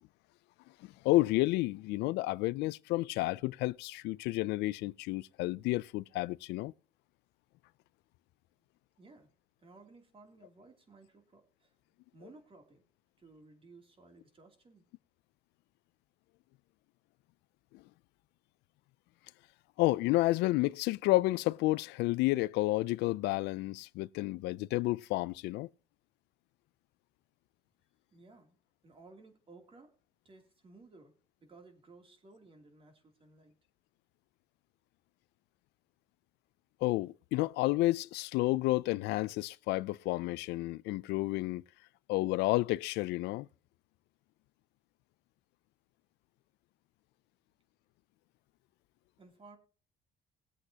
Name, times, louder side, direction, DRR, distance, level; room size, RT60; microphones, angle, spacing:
voice 1, 1.0-6.7 19.8-25.7 36.8-41.6 42.1-43.5, left 19 dB, 85° left, 0.4 m, -30 dB
voice 2, 9.0-9.3 9.6-11.7 12.1-12.8 13.2-14.8 28.1-28.6 28.8-29.9 30.2-31.1 31.4-33.5 49.2-49.6, right 3 dB, 30° right, 2.9 m, -57 dB
20.5 x 8.1 x 2.8 m
cardioid pair, 110°, 17 cm